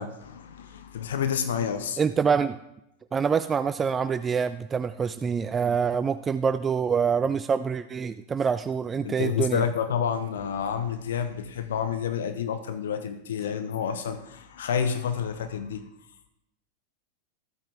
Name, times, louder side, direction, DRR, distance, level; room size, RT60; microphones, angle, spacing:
voice 1, 0.0-2.0 9.0-15.8, left 7 dB, 60° left, 9 dB, 0.9 m, -29 dB
voice 2, 2.0-2.6 3.1-9.7, right 6 dB, 20° right, 12 dB, 0.4 m, -26 dB
14.0 x 8.5 x 3.4 m, 0.82 s
figure-of-eight pair, 90°, 0 cm